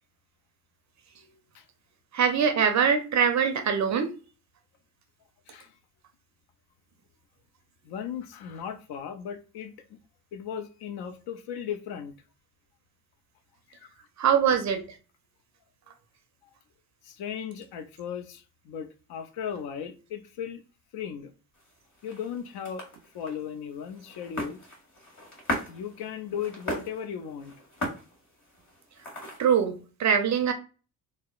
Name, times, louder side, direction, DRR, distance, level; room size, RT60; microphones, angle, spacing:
voice 1, 1.2-1.7 5.5-5.7 7.8-10.0 10.3-12.2 13.7-13.9 17.0-20.6 20.9-21.3 22.0-22.9 23.1-24.6 25.7-27.5, left 8 dB, 55° left, 0.5 m, -37 dB
voice 2, 2.1-4.1 14.2-14.8 29.4-30.5, right 7 dB, 40° right, 0.5 m, -23 dB
sound 1, 21.5-29.6, equal, 25° left, 1.4 m, -38 dB
2.7 x 2.0 x 2.3 m
hypercardioid pair, 50°, 46 cm